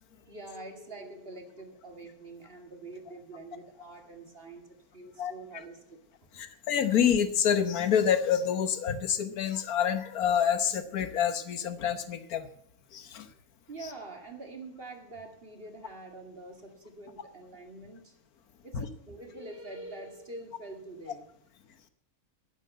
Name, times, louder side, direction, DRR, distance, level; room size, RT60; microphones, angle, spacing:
voice 1, 0.2-6.3 13.7-18.2 18.6-21.3, right 2 dB, 40° right, 4 dB, 2.4 m, -45 dB
voice 2, 6.4-12.5 12.9-13.2 18.7-18.9, left 8 dB, 90° left, 11 dB, 1.5 m, -27 dB
11.0 x 9.3 x 9.3 m, 0.73 s
omnidirectional pair, 1.5 m